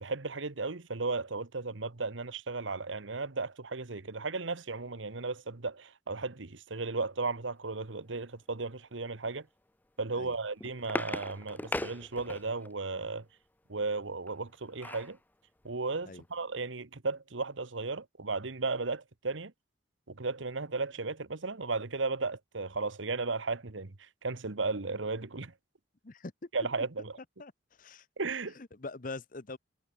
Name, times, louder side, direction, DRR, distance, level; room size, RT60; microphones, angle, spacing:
voice 1, 0.0-9.4 10.0-13.2 13.7-15.2 15.6-19.5 20.1-23.9 24.2-25.5 26.5-27.1 28.2-28.6, right 3 dB, 80° right, 1.3 m, -35 dB
sound 1, 10.2-12.7 14.3-15.2 15.6-15.7 16.0-16.2, left 1 dB, 10° left, 0.6 m, -38 dB
voice 2, 26.0-26.5 27.4-28.1 28.5-29.6, left 3 dB, 45° left, 0.9 m, -43 dB
head